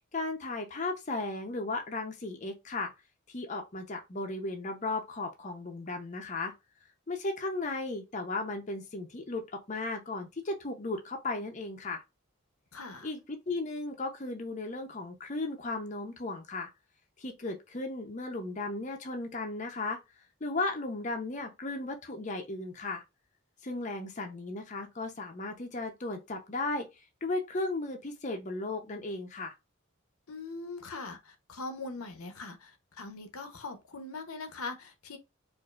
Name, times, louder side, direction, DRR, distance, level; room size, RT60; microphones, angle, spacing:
voice 1, 0.1-2.9 3.3-6.5 7.1-12.0 13.0-16.7 17.2-20.0 20.4-23.0 23.6-26.9 27.2-29.5, left 2 dB, 35° left, 0.6 m, -35 dB
voice 2, 12.7-13.1 30.3-35.2, left 3 dB, 85° left, 0.8 m, -41 dB
4.7 x 2.6 x 2.4 m
head